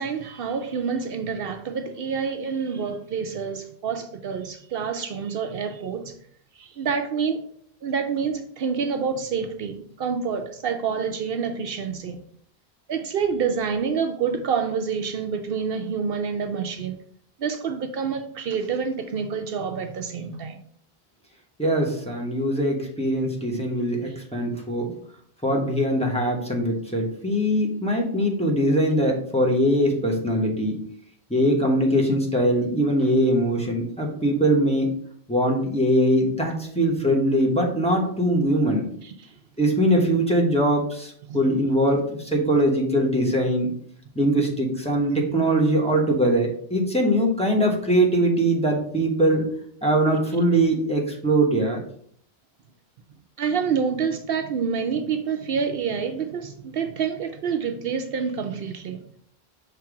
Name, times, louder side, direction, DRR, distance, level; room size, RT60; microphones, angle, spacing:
voice 1, 0.0-6.1 6.6-7.4 7.8-12.2 12.9-17.0 17.4-20.6 33.1-33.2 39.0-39.3 41.3-41.5 53.4-59.0, right 6 dB, 70° right, 0.8 m, -27 dB
voice 2, 21.6-24.9 25.4-30.8 31.3-34.9 35.3-38.9 39.6-43.7 44.1-49.5 49.8-51.8, right 1 dB, 5° left, 1.2 m, -22 dB
5.8 x 3.4 x 4.8 m
omnidirectional pair, 1.0 m